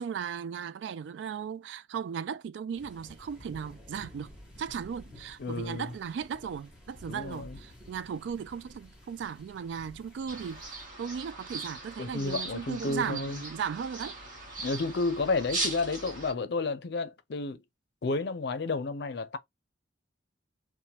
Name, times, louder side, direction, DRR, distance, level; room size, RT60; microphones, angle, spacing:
voice 1, 0.0-4.3 4.6-14.2, right 7 dB, 75° right, 0.3 m, -36 dB
sound 1, 2.7-10.9, left 1 dB, 5° right, 1.1 m, -52 dB
voice 2, 5.4-5.9 7.1-7.6 12.0-13.4 14.6-17.6 18.0-19.4, left 3 dB, 60° left, 0.5 m, -31 dB
sound 2, 10.3-16.3, right 2 dB, 45° right, 1.2 m, -39 dB
2.9 x 2.2 x 2.8 m
head